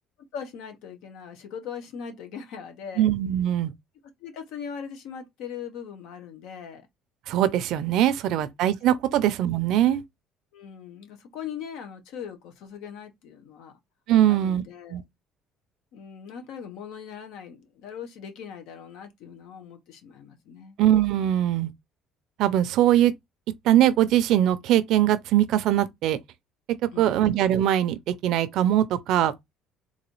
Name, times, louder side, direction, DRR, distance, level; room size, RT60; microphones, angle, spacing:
voice 1, 0.3-3.1 4.2-6.8 8.3-8.5 9.1-9.2 10.5-13.7 14.3-15.0 15.9-20.8 26.9-27.3, left 7 dB, 75° left, 1.0 m, -40 dB
voice 2, 3.0-3.7 7.3-10.0 14.1-14.6 14.9-15.0 20.8-21.7 22.4-23.1 23.6-26.2 27.0-29.3, right 12 dB, 65° right, 0.5 m, -21 dB
3.9 x 2.7 x 3.0 m
cardioid pair, 145°, 0 cm